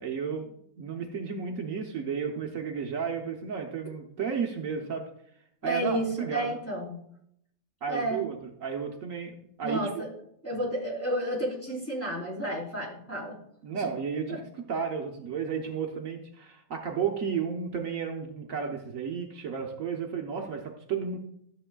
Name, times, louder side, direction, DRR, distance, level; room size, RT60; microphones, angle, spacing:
voice 1, 0.0-5.0 5.6-6.6 7.8-8.4 8.6-10.0 13.6-14.4 14.7-21.2, right 6 dB, 65° right, 2 dB, 1.3 m, -33 dB
voice 2, 5.6-7.0 7.9-8.2 9.6-10.1 10.4-13.4 13.8-13.9 14.3-14.4, right 1 dB, 10° left, -5 dB, 3.7 m, -31 dB
13.5 x 7.7 x 2.3 m, 0.71 s
omnidirectional pair, 1.5 m